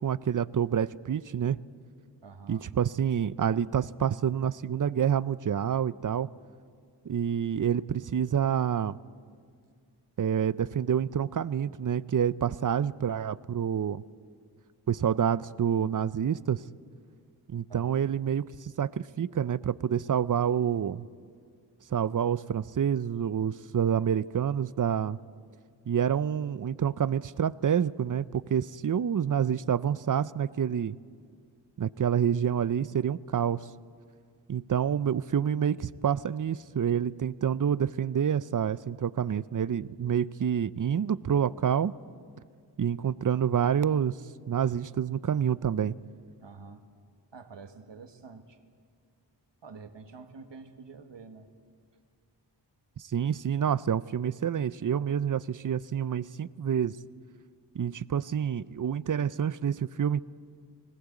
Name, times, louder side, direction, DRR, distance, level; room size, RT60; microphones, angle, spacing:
voice 1, 0.0-1.6 2.5-6.3 7.1-9.0 10.2-14.0 14.9-16.6 17.5-21.1 21.9-25.2 25.9-31.0 31.8-33.6 34.5-41.9 42.8-44.1 44.5-45.9 53.0-57.0 57.7-60.2, right 8 dB, 45° right, 18 dB, 0.5 m, -28 dB
voice 2, 2.2-2.6 17.7-17.9 46.4-46.8 47.3-48.6 49.6-51.5, right 4 dB, 70° right, 8 dB, 1.5 m, -47 dB
19.5 x 17.5 x 8.3 m, 2.1 s
cardioid pair, 45°, 44 cm